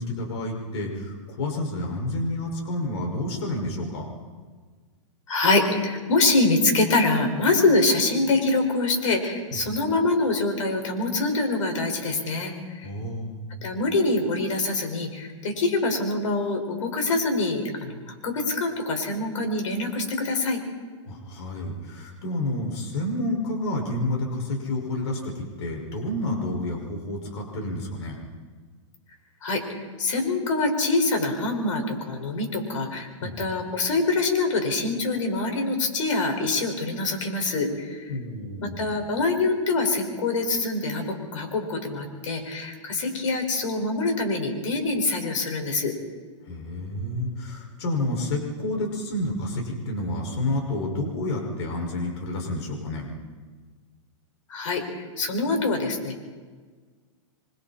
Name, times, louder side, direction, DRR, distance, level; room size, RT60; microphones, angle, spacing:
voice 1, 0.0-4.1 9.5-9.6 12.8-13.5 21.1-25.3 25.6-28.2 33.2-33.4 38.1-38.9 46.5-53.1, left 1 dB, 60° left, 1 dB, 5.6 m, -29 dB
voice 2, 5.3-12.9 13.6-20.6 29.4-38.1 38.6-45.9 54.5-56.3, left 3 dB, 80° left, 4 dB, 5.4 m, -25 dB
27.5 x 24.0 x 4.3 m, 1.5 s
hypercardioid pair, 150°, 16 cm